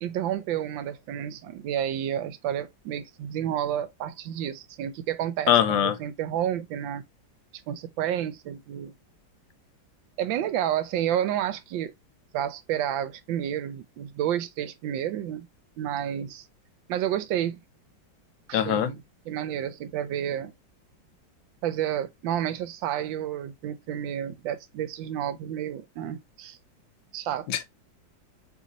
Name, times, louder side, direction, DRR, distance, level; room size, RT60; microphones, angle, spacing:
voice 1, 0.0-7.0 7.7-8.9 10.2-11.9 12.3-15.5 15.8-16.4 16.9-17.6 18.5-20.5 21.6-26.6 27.1-27.6, right 10 dB, 80° right, 1.4 m, -30 dB
voice 2, 5.5-6.0 18.5-18.9 27.5-27.6, left 10 dB, 80° left, 1.4 m, -22 dB
4.1 x 3.4 x 3.8 m
omnidirectional pair, 2.0 m